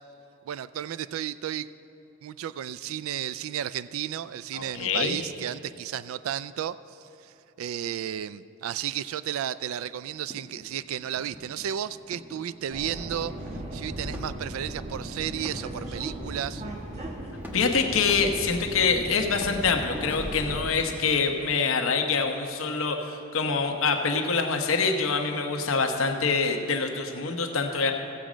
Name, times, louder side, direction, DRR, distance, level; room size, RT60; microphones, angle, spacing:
voice 1, 0.4-1.7 2.2-13.3 13.7-16.6, right 10 dB, 70° right, 16 dB, 0.3 m, -33 dB
voice 2, 4.5-5.2 17.5-27.9, left 4 dB, 70° left, 4 dB, 1.0 m, -25 dB
sound 1, 9.8-21.2, equal, 10° right, 1.1 m, -45 dB
Subway metro underground, 12.7-20.7, right 1 dB, 35° right, 1.1 m, -37 dB
16.0 x 7.3 x 5.1 m, 2.9 s
head